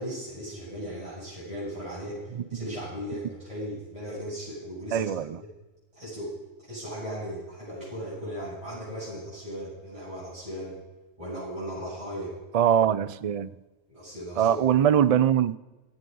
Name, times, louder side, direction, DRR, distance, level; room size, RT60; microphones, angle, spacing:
voice 1, 0.0-5.1 5.9-6.4 6.6-10.8 11.2-12.3 13.9-14.7, equal, 25° right, 7.6 m, -37 dB
voice 2, 4.9-5.4 12.5-13.5 14.4-15.6, right 9 dB, 70° right, 0.3 m, -22 dB
17.0 x 14.0 x 5.5 m
omnidirectional pair, 1.4 m